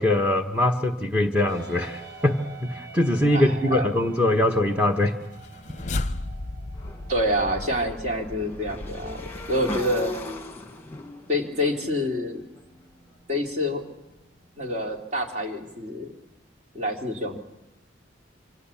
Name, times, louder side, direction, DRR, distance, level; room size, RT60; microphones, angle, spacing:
voice 1, 0.0-5.1, left 1 dB, 5° right, 3 dB, 1.1 m, -22 dB
sound 1, 1.5-15.1, right 4 dB, 60° right, 5.7 m, -48 dB
voice 2, 3.3-3.9 7.1-10.2 11.3-12.4 13.3-13.8 14.6-16.1 16.7-17.4, left 1 dB, 40° right, 2 dB, 2.9 m, -27 dB
sound 2, 5.2-10.6, left 2 dB, 40° left, 0.8 m, -35 dB
Motorcycle / Engine, 6.7-12.9, left 2 dB, 10° left, 1.8 m, -39 dB
26.0 x 25.0 x 7.2 m, 0.96 s
head